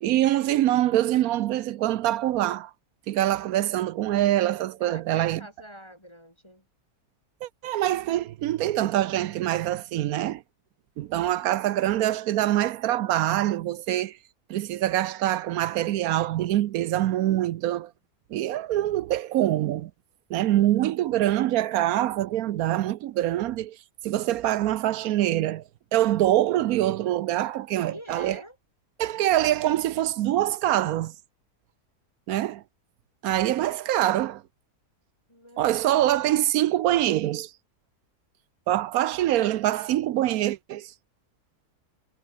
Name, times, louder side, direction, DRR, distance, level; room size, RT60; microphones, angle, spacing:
voice 1, 0.0-2.7 3.1-5.4 7.4-10.4 11.0-14.2 14.5-17.9 18.3-19.9 20.3-23.8 24.0-25.6 25.9-28.4 29.0-31.1 32.3-32.6 33.2-34.4 35.6-37.5 38.7-40.9, right 13 dB, 70° right, 1.0 m, -24 dB
voice 2, 4.8-6.7 27.8-28.6 35.3-36.2, equal, 15° left, 4.6 m, -46 dB
omnidirectional pair, 1.7 m